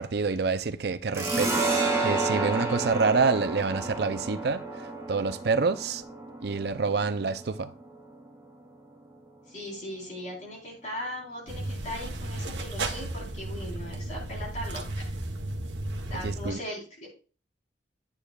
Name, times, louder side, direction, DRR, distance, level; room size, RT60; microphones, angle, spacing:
voice 1, 0.0-1.6 2.0-6.0 6.4-7.7 16.2-16.6, right 4 dB, 65° right, 0.6 m, -27 dB
sound 1, 1.1-8.3, right 3 dB, 15° right, 3.6 m, -31 dB
voice 2, 9.5-14.8 16.1-17.1, left 1 dB, 45° left, 4.2 m, -38 dB
sound 2, 11.5-16.5, right 2 dB, 90° right, 1.1 m, -34 dB
9.7 x 8.9 x 2.4 m
head